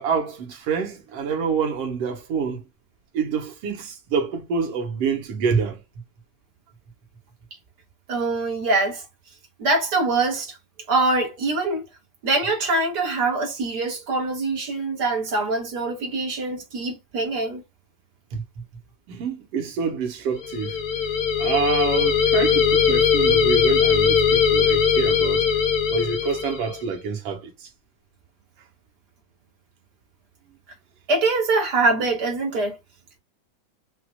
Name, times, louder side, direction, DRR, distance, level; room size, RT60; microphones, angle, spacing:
voice 1, 0.0-2.6 3.1-5.8 18.3-18.4 19.1-20.8 21.4-25.5 25.9-27.7, right 5 dB, 60° right, 2.1 m, -27 dB
voice 2, 8.1-9.1 9.6-10.6 10.9-11.8 12.2-17.6 31.1-32.8, right 3 dB, 40° right, 2.0 m, -23 dB
sound 1, 20.4-26.8, left 6 dB, 60° left, 1.7 m, -20 dB
6.3 x 2.8 x 2.3 m
omnidirectional pair, 3.6 m